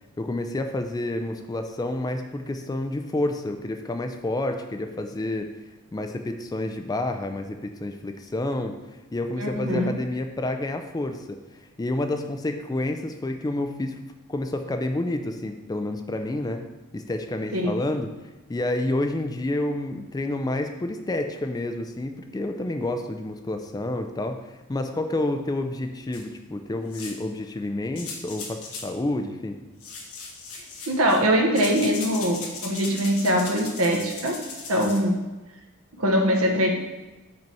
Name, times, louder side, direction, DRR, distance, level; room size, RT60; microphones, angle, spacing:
voice 1, 0.2-5.5 5.9-8.8 9.1-11.4 11.8-14.0 14.3-16.6 16.9-18.1 18.5-29.6, left 1 dB, 15° left, 6 dB, 0.4 m, -29 dB
voice 2, 9.4-9.9 17.5-17.7 30.5-34.4 34.7-35.1 35.9-36.7, equal, 80° right, 1 dB, 1.2 m, -23 dB
sound 1, 26.1-26.2 26.9-27.3 28.0-28.9 29.8-31.3 31.5-35.0, left 4 dB, 75° left, 1.3 m, -38 dB
5.3 x 4.5 x 5.4 m, 1.1 s
head